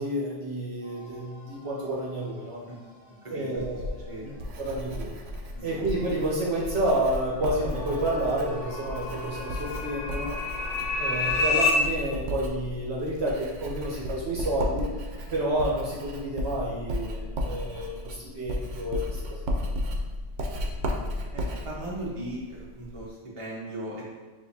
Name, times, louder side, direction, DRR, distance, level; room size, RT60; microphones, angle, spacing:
voice 1, 0.0-2.6 3.3-4.3 4.6-5.1 5.6-10.4 11.0-14.9 15.3-19.5, right 1 dB, 65° right, -4 dB, 1.1 m, -30 dB
sound 1, 0.8-11.9, left 1 dB, 50° right, 1.4 m, -47 dB
voice 2, 3.3-4.3 5.5-5.8 20.3-20.9 21.3-24.2, right 1 dB, 30° right, -6 dB, 1.1 m, -38 dB
Writing, 3.6-23.1, left 1 dB, 90° right, 1.0 m, -34 dB
sound 2, 7.4-11.7, left 4 dB, 90° left, 1.0 m, -30 dB
6.6 x 2.6 x 2.7 m, 1.4 s
omnidirectional pair, 1.2 m